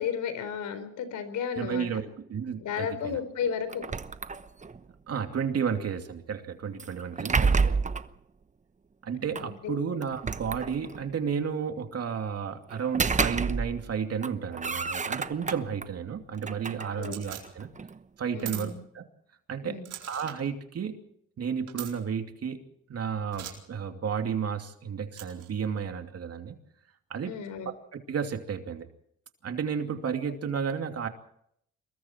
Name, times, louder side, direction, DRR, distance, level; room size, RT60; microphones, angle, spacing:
voice 1, 0.0-1.9 2.6-3.8 9.4-10.0 16.9-17.2 18.3-18.8 19.6-19.9 27.3-27.7, left 7 dB, 80° left, 11 dB, 4.2 m, -33 dB
voice 2, 1.6-3.2 5.1-7.8 9.0-17.7 18.2-19.0 19.5-21.0 21.4-22.6 22.9-26.6 27.1-27.4 28.1-28.9 29.4-31.1, right 7 dB, 55° right, 5 dB, 2.7 m, -32 dB
sound 1, 3.7-4.8 6.8-8.1 9.3-9.5 10.0-11.1 12.7-13.9 14.2-15.9 16.3-18.0, right 4 dB, 25° right, 1.0 m, -29 dB
sound 2, 17.0-17.4 18.4-18.7 19.9-20.4 21.7-21.9 23.3-23.5 25.1-25.5, right 12 dB, 90° right, 4.4 m, -40 dB
26.5 x 22.0 x 4.5 m, 0.70 s
cardioid pair, 90°, 30 cm